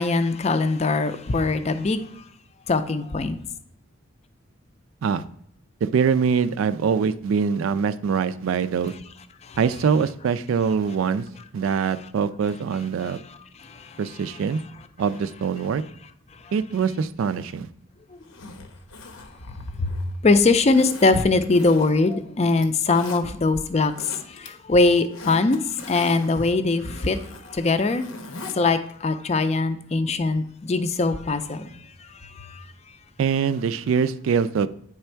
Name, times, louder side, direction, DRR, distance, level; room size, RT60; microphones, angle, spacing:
voice 1, 0.0-2.2 2.7-3.4 9.4-9.6 13.0-13.2 13.6-14.0 19.8-19.9 20.2-28.1 28.5-31.7 32.0-32.6, left 3 dB, 30° left, 0.4 m, -22 dB
voice 2, 5.8-8.9 9.6-11.3 11.5-13.2 14.0-14.6 15.0-15.8 16.5-17.7 33.2-34.7, right 6 dB, 80° right, 0.3 m, -23 dB
Zipper (clothing), 18.2-20.2 20.7-22.1 22.5-23.2 23.7-24.5 24.8-28.6 28.9-29.0, left 3 dB, 85° left, 0.9 m, -41 dB
8.8 x 3.4 x 4.4 m
head